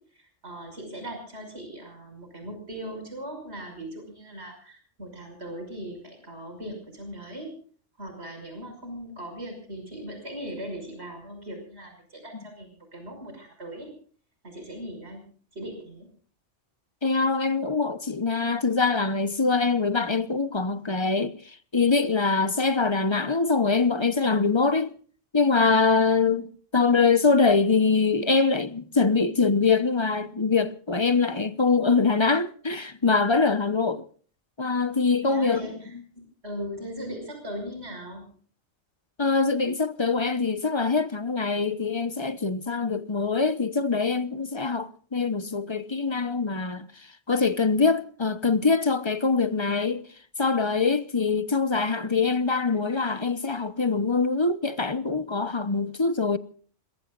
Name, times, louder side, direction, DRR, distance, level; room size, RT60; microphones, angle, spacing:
voice 1, 0.1-7.5 8.0-13.9 14.4-16.1 35.2-35.9 36.4-38.3, equal, 60° right, 6.2 m, -39 dB
voice 2, 17.0-24.9 25.3-34.1 34.6-35.7 39.2-50.0 50.4-56.4, left 4 dB, 25° left, 0.9 m, -24 dB
26.5 x 21.0 x 2.5 m
omnidirectional pair, 1.3 m